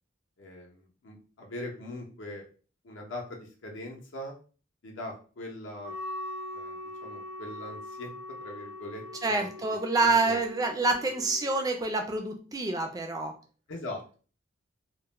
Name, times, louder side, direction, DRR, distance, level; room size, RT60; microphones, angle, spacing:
voice 1, 0.4-2.4 2.8-4.3 4.8-5.9 6.5-8.1 8.4-9.5 10.0-10.4 13.7-14.1, left 1 dB, 75° left, 0 dB, 0.6 m, -41 dB
Wind instrument woodwind instrument, 5.8-11.7, left 1 dB, 80° right, 0.7 m, -41 dB
voice 2, 9.2-13.3, right 3 dB, 20° right, 4 dB, 0.3 m, -27 dB
2.3 x 2.0 x 3.0 m, 0.38 s
head